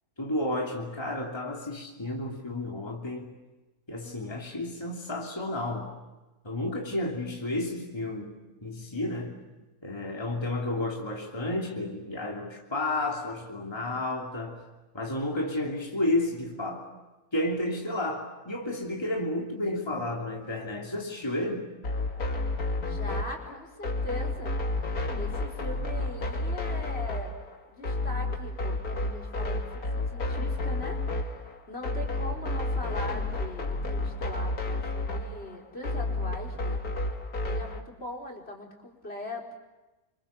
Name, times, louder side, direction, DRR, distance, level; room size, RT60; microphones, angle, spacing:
voice 1, 0.2-3.3 3.9-5.9 6.4-9.4 9.8-14.6 14.9-16.9 17.3-21.7, left 1 dB, 15° left, 0 dB, 3.1 m, -31 dB
voice 2, 4.0-4.4 22.8-24.8 25.2-27.3 27.7-37.0 37.5-39.6, left 1 dB, 45° left, 3 dB, 4.8 m, -41 dB
sound 1, 21.8-37.8, left 2 dB, 80° left, 2.8 m, -31 dB
30.0 x 26.0 x 7.1 m, 1.1 s
omnidirectional pair, 1.5 m